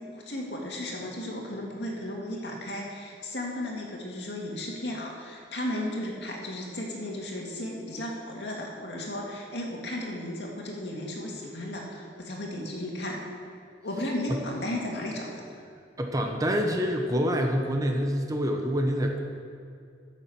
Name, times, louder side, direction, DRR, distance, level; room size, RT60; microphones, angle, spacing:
voice 1, 0.1-13.2 13.8-15.4, left 1 dB, 65° left, -1 dB, 2.2 m, -34 dB
voice 2, 16.0-19.2, equal, 20° right, 3 dB, 0.9 m, -26 dB
10.5 x 7.3 x 7.0 m, 2.3 s
head